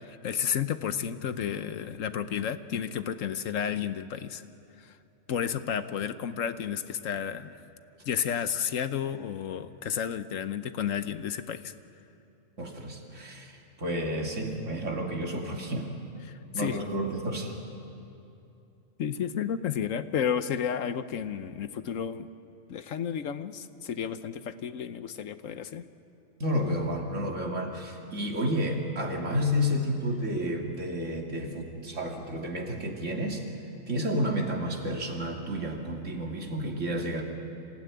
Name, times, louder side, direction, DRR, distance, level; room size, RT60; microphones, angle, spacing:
voice 1, 0.0-4.4 5.3-7.6 8.1-11.7 16.3-16.8 19.0-22.3 22.7-25.8, left 8 dB, 70° left, 12 dB, 1.2 m, -32 dB
voice 2, 12.6-15.9 16.5-17.6 26.4-33.4 33.9-37.2, equal, 60° right, 1 dB, 2.7 m, -31 dB
26.0 x 16.5 x 9.3 m, 2.8 s
omnidirectional pair, 1.4 m